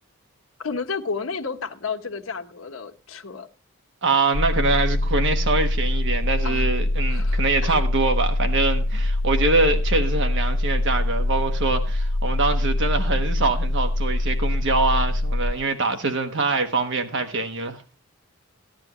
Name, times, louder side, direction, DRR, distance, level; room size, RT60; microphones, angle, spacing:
voice 1, 0.6-3.5 6.4-6.7 7.1-7.8, left 5 dB, 75° left, 1.3 m, -32 dB
voice 2, 4.0-17.8, right 3 dB, 60° right, 1.3 m, -24 dB
sound 1, 4.3-15.5, left 1 dB, 45° left, 0.8 m, -23 dB
15.0 x 10.5 x 3.0 m
head